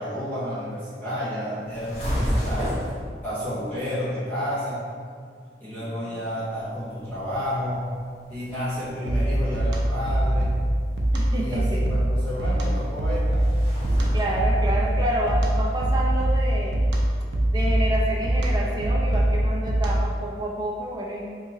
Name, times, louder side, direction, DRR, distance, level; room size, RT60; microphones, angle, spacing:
voice 1, 0.0-2.7 3.2-4.8 5.6-7.9 8.3-10.5 11.4-13.5 14.0-14.2, equal, 10° left, -13 dB, 1.1 m, -31 dB
sound 1, 1.6-3.0 6.4-16.5, equal, 35° left, 0.9 m, -34 dB
sound 2, 9.1-20.2, right 1 dB, 85° right, 0.5 m, -23 dB
voice 2, 11.1-11.8 14.1-16.8 17.5-21.3, right 1 dB, 25° right, -3 dB, 0.4 m, -29 dB
2.8 x 2.7 x 3.7 m, 2.1 s
head